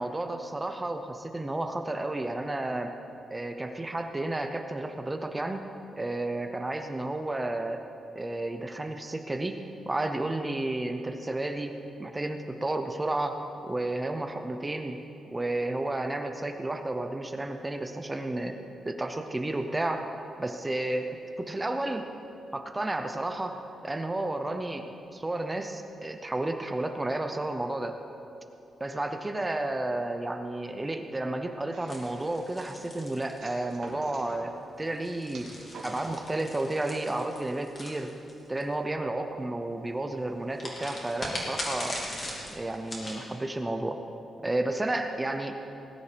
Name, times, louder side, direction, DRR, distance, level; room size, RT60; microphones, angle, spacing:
voice 1, 0.0-2.9 3.3-5.6 6.0-7.8 8.1-9.6 9.9-11.7 12.0-15.0 15.3-18.6 18.8-20.1 20.4-21.1 21.4-22.1 22.5-28.0 28.8-35.5 35.8-38.1 38.5-42.0 42.5-44.0 44.4-45.6, right 2 dB, 15° right, 6 dB, 0.7 m, -32 dB
sound 1, 31.7-32.4 33.4-34.4 35.3-36.2, right 3 dB, 60° right, 2.6 m, -46 dB
sound 2, 31.9-33.9 34.9-38.6 40.6-43.2, left 1 dB, 25° left, 2.5 m, -39 dB
19.0 x 10.0 x 5.1 m, 2.8 s
wide cardioid pair, 155°, 0 cm